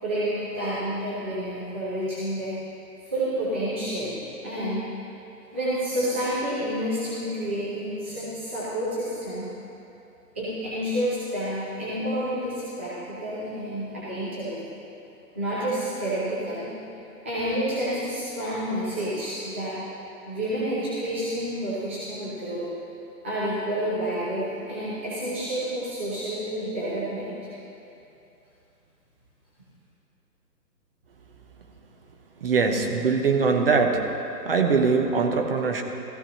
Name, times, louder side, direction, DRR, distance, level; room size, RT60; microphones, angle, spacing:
voice 1, 0.0-2.6 3.0-4.8 5.5-9.5 10.3-14.6 15.3-16.7 17.2-19.8 20.2-22.7 23.2-27.4, equal, 10° right, -12 dB, 0.5 m, -29 dB
voice 2, 32.4-34.1 34.4-35.8, right 4 dB, 35° right, 3 dB, 0.8 m, -22 dB
14.5 x 13.5 x 3.0 m, 2.8 s
figure-of-eight pair, 135°, 49 cm